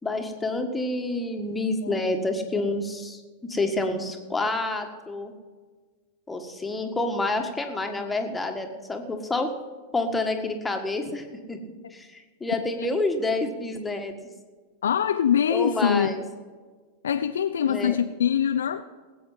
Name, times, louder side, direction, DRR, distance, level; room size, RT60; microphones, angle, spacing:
voice 1, 0.0-5.3 6.3-9.5 9.9-11.6 11.9-14.1 15.5-16.2 17.7-18.0, left 2 dB, 10° left, 1.7 m, -28 dB
voice 2, 14.8-16.1 17.0-18.8, left 9 dB, 65° left, 0.5 m, -23 dB
19.0 x 8.6 x 5.7 m
figure-of-eight pair, 90°, 0 cm